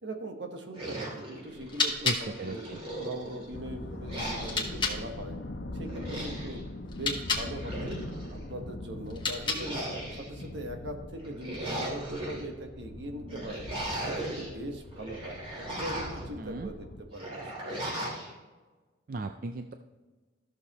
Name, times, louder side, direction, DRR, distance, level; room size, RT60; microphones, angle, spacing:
voice 1, 0.0-2.6 3.0-5.4 5.7-6.6 6.9-8.0 8.3-9.8 10.1-13.7 14.0-15.4 15.7-17.5, right 1 dB, 75° right, 4 dB, 1.3 m, -40 dB
sound 1, 0.7-1.9 2.3-3.5 4.1-4.8 5.8-6.6 7.4-8.4 9.4-10.4 11.2-12.4 13.3-14.5 14.9-16.3 17.1-18.3, right 1 dB, 30° right, 2.8 m, -37 dB
sound 2, 1.5-5.0 6.8-7.5 9.0-9.9, left 4 dB, 25° left, 1.4 m, -33 dB
voice 2, 2.0-2.8 16.4-16.7 19.1-19.7, right 3 dB, 50° right, 6 dB, 0.4 m, -36 dB
sound 3, 3.5-17.0, left 1 dB, 85° left, 0.9 m, -42 dB
14.0 x 6.6 x 3.0 m, 1.3 s
head